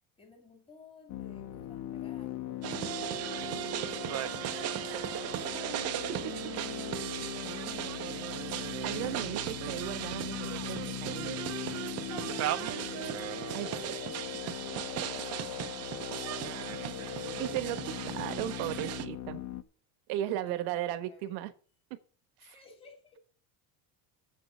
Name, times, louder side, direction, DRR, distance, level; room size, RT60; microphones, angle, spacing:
voice 1, 0.2-4.1 4.4-6.9 7.2-7.9 12.1-12.5 13.4-16.7 20.3-21.4 22.4-23.2, left 4 dB, 15° left, 2.6 m, -55 dB
sound 1, 1.1-19.6, left 11 dB, 45° left, 0.8 m, -40 dB
sound 2, 2.6-19.1, right 12 dB, 40° right, 0.9 m, -37 dB
voice 2, 8.8-11.4 13.5-13.7 17.4-17.8 18.1-19.4 20.1-21.5 21.9-22.0 22.4-22.6, right 13 dB, 70° right, 1.4 m, -36 dB
7.7 x 7.7 x 8.6 m
cardioid pair, 160°, 40 cm